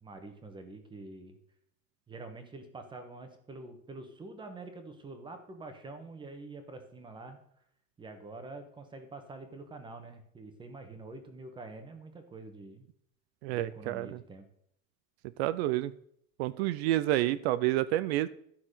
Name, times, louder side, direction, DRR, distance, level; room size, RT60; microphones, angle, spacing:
voice 1, 0.0-1.4 2.1-7.4 8.0-12.9 13.5-14.5, right 3 dB, 10° right, 7 dB, 1.2 m, -46 dB
voice 2, 13.4-14.2 15.4-15.9 16.4-18.3, right 15 dB, 50° right, 16 dB, 0.5 m, -29 dB
12.5 x 5.9 x 6.6 m, 0.69 s
supercardioid pair, 165°, 41 cm